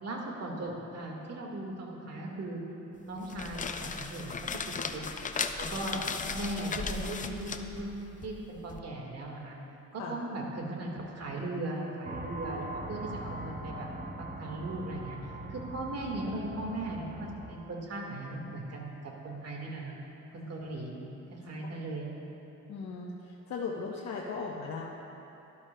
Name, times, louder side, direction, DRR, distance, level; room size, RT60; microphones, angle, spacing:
voice 1, 0.0-2.6 3.0-4.3 4.9-5.0 5.6-6.0 6.3-9.6 9.9-13.9 14.2-15.2 15.5-19.9 20.3-20.9 21.4-22.1, right 2 dB, 55° right, -1 dB, 1.7 m, -38 dB
sound 1, 3.1-8.8, left 5 dB, 25° left, 0.5 m, -37 dB
sound 2, 12.0-17.5, right 1 dB, 30° right, 0.8 m, -41 dB
voice 2, 22.7-24.8, left 4 dB, 60° left, -3 dB, 0.9 m, -37 dB
12.0 x 12.0 x 2.2 m, 3.0 s
cardioid pair, 90°, 30 cm